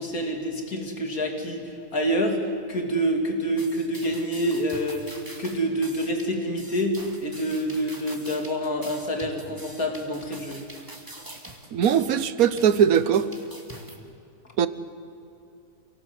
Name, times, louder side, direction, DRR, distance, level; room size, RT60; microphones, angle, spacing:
voice 1, 0.0-2.4 2.7-5.1 5.4-10.6, equal, 85° left, 2 dB, 3.3 m, -27 dB
sound 1, 3.6-14.0, right 1 dB, 15° right, 2.2 m, -44 dB
voice 2, 11.7-13.3 14.6-14.7, right 8 dB, 85° right, 14 dB, 1.4 m, -20 dB
28.0 x 18.0 x 8.1 m, 2.7 s
omnidirectional pair, 1.5 m